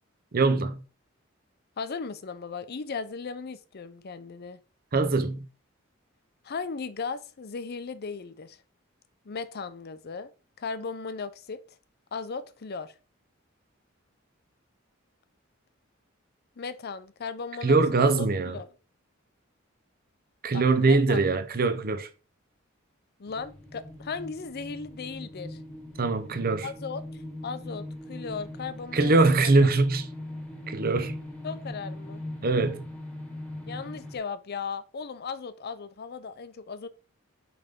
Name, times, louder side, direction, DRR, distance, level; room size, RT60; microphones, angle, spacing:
voice 1, 0.3-0.8 4.9-5.4 17.6-18.5 20.4-22.1 26.0-26.7 28.9-30.1 30.7-31.2 32.4-32.9, right 3 dB, 45° right, 0.7 m, -22 dB
voice 2, 1.8-4.6 6.4-8.6 9.3-10.3 10.6-11.6 12.1-12.9 16.6-18.3 18.5-18.7 20.5-21.2 23.2-25.6 26.6-27.0 27.4-29.1 29.4-29.5 31.4-32.2 33.7-36.9, left 5 dB, 50° left, 0.5 m, -36 dB
sound 1, 23.3-34.2, left 1 dB, 5° left, 1.6 m, -40 dB
5.5 x 5.1 x 3.6 m
head